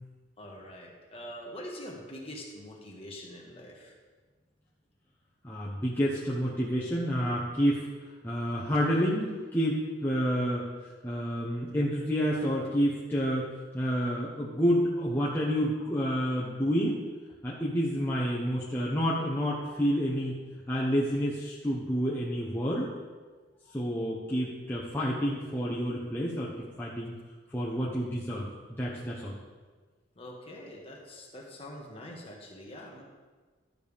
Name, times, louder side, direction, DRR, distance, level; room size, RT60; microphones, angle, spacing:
voice 1, 0.4-3.9 30.2-33.0, equal, 30° left, -1 dB, 1.6 m, -44 dB
voice 2, 5.4-7.9 8.2-10.6 11.0-13.5 13.7-17.0 17.4-20.4 20.7-22.9 23.7-26.5 26.8-27.1 27.5-28.5 28.8-29.3, equal, 10° left, -6 dB, 0.9 m, -29 dB
12.0 x 6.8 x 3.5 m, 1.4 s
head